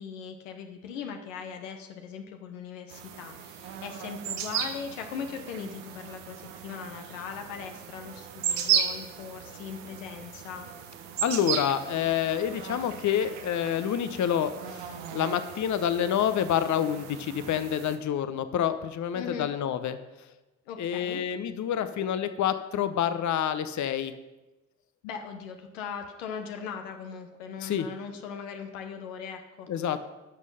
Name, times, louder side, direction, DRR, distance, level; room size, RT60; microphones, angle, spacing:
voice 1, 0.0-10.7 19.1-19.5 20.7-21.2 25.0-29.7, left 6 dB, 85° left, 5 dB, 0.9 m, -39 dB
sound 1, 2.9-18.0, right 8 dB, 80° right, 0.9 m, -35 dB
voice 2, 11.2-20.0 20.8-24.1 27.6-27.9 29.7-30.1, left 9 dB, 50° left, 11 dB, 0.8 m, -28 dB
11.0 x 6.3 x 5.5 m, 1.1 s
hypercardioid pair, 40°, 38 cm